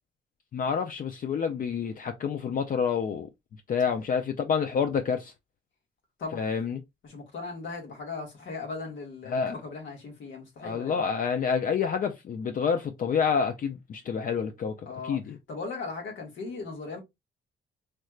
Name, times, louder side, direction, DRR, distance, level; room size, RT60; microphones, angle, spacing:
voice 1, 0.5-3.3 3.7-5.3 6.3-6.8 9.3-9.5 10.6-14.7 15.0-15.4, left 6 dB, 45° left, 0.5 m, -28 dB
voice 2, 7.0-11.0 14.8-15.2 15.5-17.0, left 4 dB, 75° left, 1.6 m, -38 dB
3.2 x 3.1 x 2.3 m
cardioid pair, 90°, 20 cm